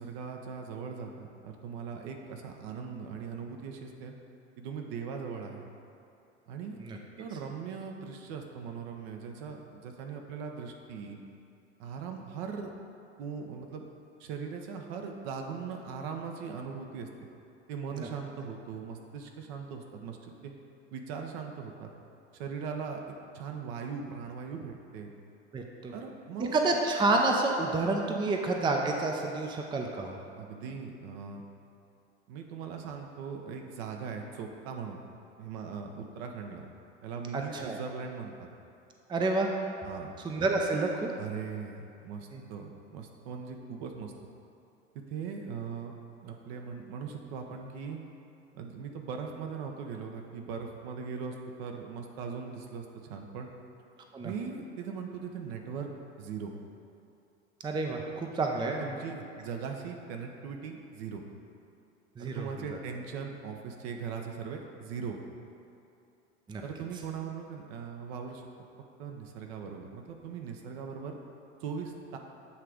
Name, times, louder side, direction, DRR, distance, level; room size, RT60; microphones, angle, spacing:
voice 1, 0.0-4.1 4.6-5.7 6.5-6.8 7.2-11.2 11.8-12.7 13.2-13.8 14.2-17.1 17.7-20.5 20.9-21.9 22.3-23.0 23.3-25.1 25.9-26.6 30.4-31.4 32.3-35.0 35.4-36.6 37.0-38.5 39.8-40.1 41.2-44.1 45.1-45.9 46.2-48.0 48.5-53.5 54.2-55.9 56.2-56.5 58.8-61.2 62.2-65.2 66.6-68.4 69.0-71.2 71.6-72.2, right 6 dB, 60° right, 3 dB, 0.9 m, -39 dB
voice 2, 25.5-25.9 26.5-30.2 37.3-37.8 39.1-39.5 40.2-41.1 42.3-42.4 54.1-54.3 57.6-58.8 62.2-62.8 66.5-66.6, right 2 dB, 15° right, 2 dB, 0.5 m, -29 dB
8.3 x 3.3 x 5.0 m, 2.7 s
hypercardioid pair, 80°, 35 cm